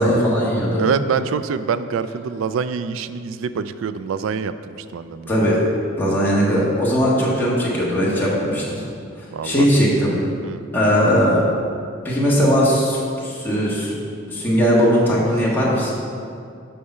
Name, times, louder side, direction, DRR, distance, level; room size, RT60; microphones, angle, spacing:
voice 1, 0.0-0.9 5.3-5.6 5.9-8.8 9.2-10.1 10.7-11.4 12.0-13.9 14.3-15.9, equal, 10° left, -7 dB, 1.6 m, -19 dB
voice 2, 0.8-5.6 9.3-9.7 10.4-10.6, right 6 dB, 80° right, 12 dB, 0.3 m, -25 dB
6.7 x 5.6 x 5.5 m, 2.4 s
head